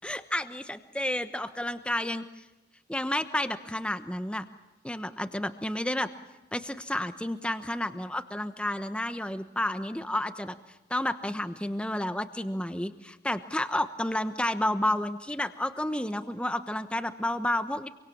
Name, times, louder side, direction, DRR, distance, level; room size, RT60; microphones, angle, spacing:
voice 1, 0.0-2.2 2.9-4.4 4.8-6.1 6.5-10.6 10.9-17.9, left 1 dB, 5° left, 10 dB, 1.0 m, -31 dB
27.0 x 24.0 x 7.3 m, 1.0 s
head